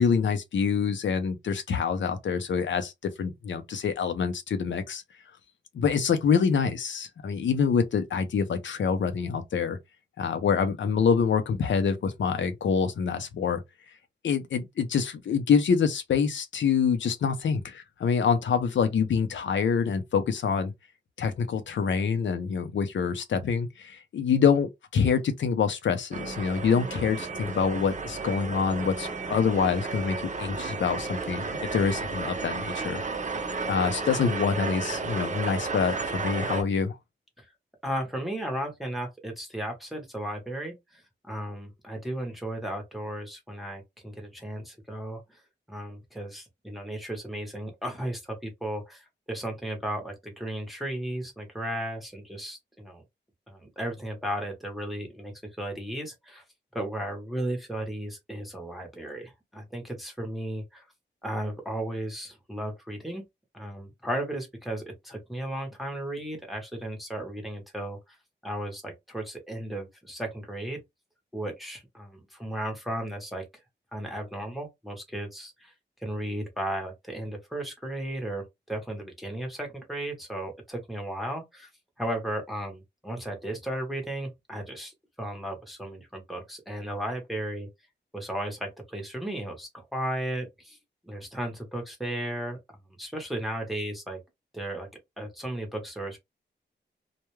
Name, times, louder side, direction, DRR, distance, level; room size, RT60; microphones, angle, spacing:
voice 1, 0.0-5.0 5.7-9.8 10.2-13.6 14.2-20.7 21.2-33.0 33.7-37.0, left 6 dB, 80° left, 0.6 m, -26 dB
sound 1, 26.1-36.6, right 4 dB, 40° right, 0.7 m, -33 dB
voice 2, 37.8-45.4 45.7-53.0 53.5-56.4 56.7-60.9 61.2-63.2 63.5-68.0 68.4-70.8 71.3-73.5 73.9-75.7 76.0-81.7 82.0-87.7 88.1-90.8 91.0-92.6 93.0-94.2 94.5-94.9 95.2-96.2, right 1 dB, ahead, 0.9 m, -35 dB
2.3 x 2.1 x 3.0 m
wide cardioid pair, 110°, 19 cm